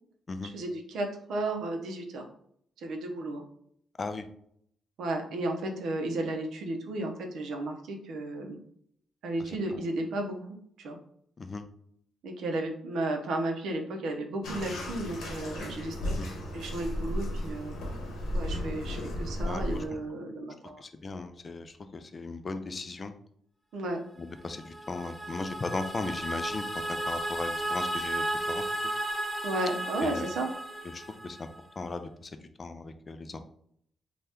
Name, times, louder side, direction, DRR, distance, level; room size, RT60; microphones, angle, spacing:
voice 1, 0.4-2.3 2.8-3.4 5.0-8.6 9.2-11.0 12.2-16.1 16.5-17.7 18.3-20.8 23.7-24.0 29.4-30.5, right 2 dB, 80° right, 3 dB, 0.6 m, -33 dB
voice 2, 9.4-9.8 11.4-11.6 16.0-16.3 19.4-19.8 20.8-23.1 24.2-28.6 30.0-31.5 31.8-32.3 32.6-33.4, left 3 dB, 35° left, 9 dB, 0.3 m, -37 dB
Bathtub (filling or washing), 14.4-19.9, left 1 dB, 85° left, 0.8 m, -34 dB
sound 1, 24.4-31.5, right 1 dB, 10° left, 1.0 m, -34 dB
2.7 x 2.3 x 3.4 m, 0.67 s
cardioid pair, 95°, 0 cm